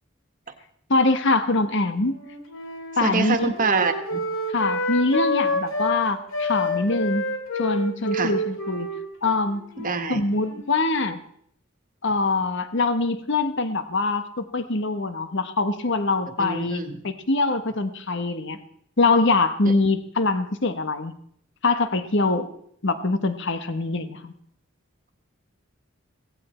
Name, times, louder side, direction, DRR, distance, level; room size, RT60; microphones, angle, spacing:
voice 1, 0.9-2.2 3.0-3.5 4.5-7.2 7.6-8.9 9.2-9.6 10.1-11.2 12.0-18.6 19.0-21.1 21.6-22.5 22.8-24.3, left 3 dB, 65° left, 10 dB, 1.4 m, -23 dB
Wind instrument woodwind instrument, 2.0-6.0 6.3-10.8, left 1 dB, 80° left, 2.5 m, -28 dB
voice 2, 3.0-4.2 8.1-8.4 9.8-10.2 16.4-17.0 19.7-19.8, right 4 dB, 40° right, 7 dB, 1.6 m, -25 dB
17.0 x 16.0 x 4.5 m, 0.68 s
head